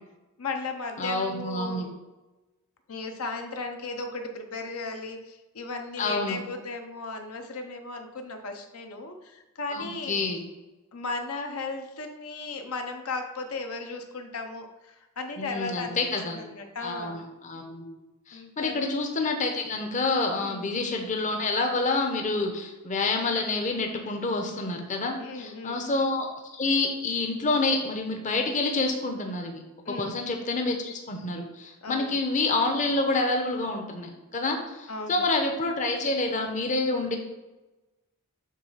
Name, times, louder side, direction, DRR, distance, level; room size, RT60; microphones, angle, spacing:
voice 1, 0.4-1.9 2.9-10.2 10.9-17.3 18.3-18.9 20.4-20.7 25.2-25.8 29.9-30.1 31.8-32.2 34.9-35.2, left 3 dB, 70° left, 5 dB, 0.7 m, -36 dB
voice 2, 1.0-1.9 6.0-6.4 9.7-10.4 15.4-16.4 16.8-17.9 18.3-26.3 26.6-29.6 29.9-37.2, left 3 dB, 35° left, 3 dB, 0.7 m, -28 dB
7.6 x 3.2 x 5.6 m, 1.1 s
head